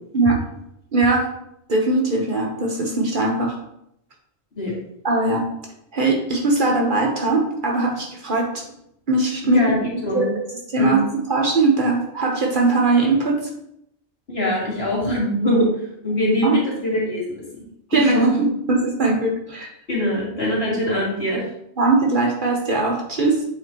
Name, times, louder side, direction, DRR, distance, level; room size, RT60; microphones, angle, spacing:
voice 1, 0.9-1.3 1.7-3.6 5.0-5.4 5.9-8.6 9.1-9.7 10.1-10.3 10.7-13.5 16.4-16.6 17.9-19.7 21.8-23.4, right 3 dB, 40° right, 0 dB, 1.2 m, -20 dB
voice 2, 9.5-10.3 10.8-11.1 14.3-15.7 16.0-17.6 17.9-18.2 19.9-21.4, equal, 45° left, -6 dB, 2.7 m, -23 dB
8.2 x 4.8 x 3.0 m, 0.76 s
omnidirectional pair, 1.4 m